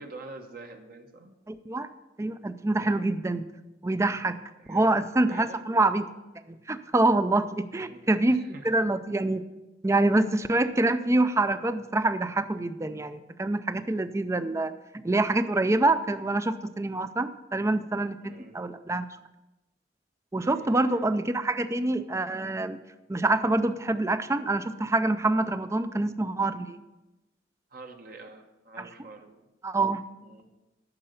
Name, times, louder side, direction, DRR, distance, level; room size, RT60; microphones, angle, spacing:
voice 1, 0.0-1.3 2.7-3.1 4.6-5.0 5.3-5.7 7.7-8.7 18.2-18.6 20.4-21.0 27.7-29.4 30.2-30.5, right 3 dB, 55° right, 4 dB, 1.0 m, -46 dB
voice 2, 1.5-1.9 2.2-3.4 3.8-4.4 4.7-6.1 6.5-9.4 9.8-19.1 20.3-22.8 23.1-26.8 28.8-28.9 29.6-30.0, right 2 dB, 15° right, 12 dB, 0.4 m, -26 dB
9.7 x 6.7 x 6.5 m, 1.0 s
head